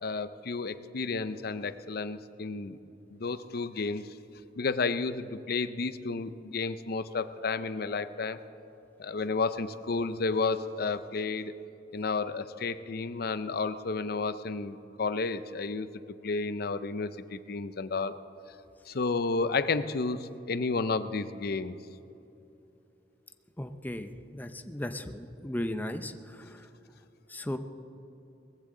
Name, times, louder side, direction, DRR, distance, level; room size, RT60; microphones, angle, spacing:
voice 1, 0.0-2.8 3.1-4.0 4.6-8.4 9.0-11.5 11.9-15.9 16.2-18.2 18.9-21.8, left 4 dB, 60° left, 13 dB, 0.6 m, -31 dB
voice 2, 23.6-26.7 27.3-27.6, left 1 dB, 10° left, 8 dB, 0.6 m, -36 dB
20.5 x 15.0 x 3.8 m, 3.0 s
head